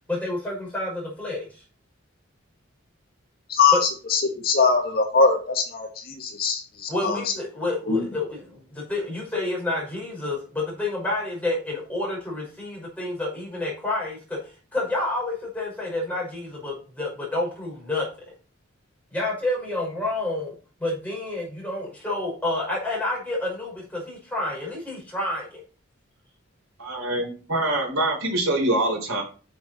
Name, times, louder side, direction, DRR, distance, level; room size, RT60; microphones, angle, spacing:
voice 1, 0.1-1.5 3.7-3.8 6.9-14.4 14.7-18.1 19.1-20.5 20.8-25.6, left 2 dB, 5° left, -3 dB, 5.5 m, -29 dB
voice 2, 3.5-7.2 7.9-8.1, left 4 dB, 45° left, 2 dB, 1.9 m, -22 dB
voice 3, 26.8-29.2, right 1 dB, 90° right, 2 dB, 3.8 m, -24 dB
9.3 x 6.9 x 4.4 m, 0.37 s
head